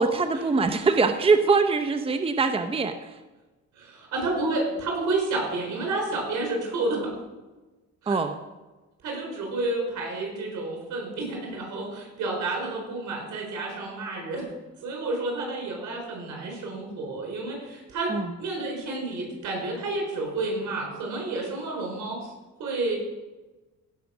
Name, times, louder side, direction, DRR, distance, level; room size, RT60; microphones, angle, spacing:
voice 1, 0.0-3.2 8.1-8.4 18.1-18.3, right 4 dB, 20° right, 8 dB, 0.7 m, -23 dB
voice 2, 3.7-7.1 8.0-8.2 9.0-14.4 14.8-18.1 18.4-22.3 22.6-23.0, right 2 dB, 75° right, 0 dB, 4.9 m, -30 dB
16.0 x 5.9 x 6.1 m, 1.2 s
cardioid pair, 90°, 30 cm